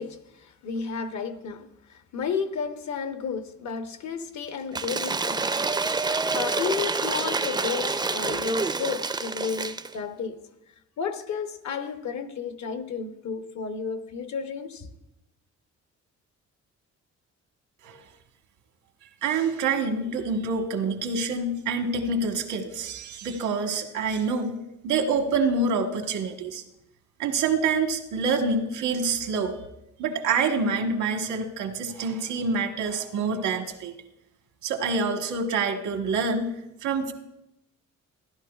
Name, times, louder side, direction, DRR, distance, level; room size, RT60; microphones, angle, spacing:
voice 1, 0.0-5.7 6.0-10.4 11.0-14.9, left 6 dB, 70° left, 1.0 m, -32 dB
Cheering / Applause / Crowd, 4.7-9.9, right 4 dB, 15° right, 0.4 m, -27 dB
voice 2, 19.2-24.6 24.8-26.6 27.2-29.6 30.0-33.9 34.6-36.5 36.8-37.1, right 4 dB, 90° right, 1.3 m, -26 dB
15.0 x 11.0 x 2.4 m
cardioid pair, 90°, 30 cm